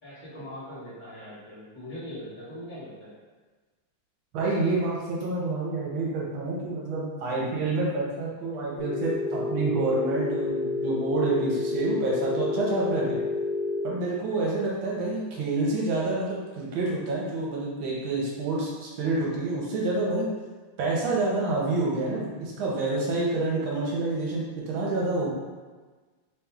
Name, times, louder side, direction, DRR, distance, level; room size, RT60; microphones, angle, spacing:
voice 1, 0.0-3.1, left 1 dB, 25° left, -9 dB, 1.4 m, -41 dB
voice 2, 4.3-13.2 13.8-20.3 20.8-25.3, right 3 dB, 75° right, -4 dB, 1.6 m, -28 dB
Telephone, 8.8-13.8, left 3 dB, 5° right, 0.9 m, -29 dB
3.3 x 3.0 x 3.5 m, 1.3 s
omnidirectional pair, 2.3 m